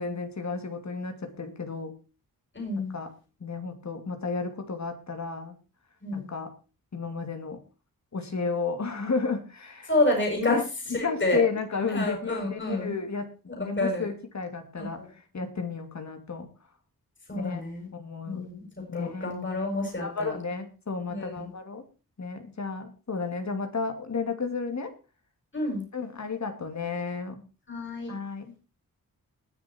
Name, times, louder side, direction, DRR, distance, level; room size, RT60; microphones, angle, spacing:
voice 1, 0.0-2.0 2.9-3.1 3.4-5.5 6.1-6.5 6.9-7.6 8.1-9.9 10.4-10.6 10.9-13.3 13.6-15.0 15.3-16.5 17.3-17.6 17.9-18.5 18.9-19.3 20.0-21.8 22.2-24.9 25.9-27.4 28.1-28.6, left 4 dB, 50° left, 7 dB, 2.7 m, -32 dB
voice 2, 2.5-3.0 6.0-6.3 9.9-10.6 10.9-11.4 11.9-12.9 13.5-14.1 14.8-15.1 17.3-17.9 18.3-20.4 21.1-21.5 25.5-25.8 27.7-28.1, left 2 dB, 35° left, 0 dB, 7.4 m, -29 dB
20.0 x 7.1 x 4.5 m, 0.33 s
cardioid pair, 75°, 35 cm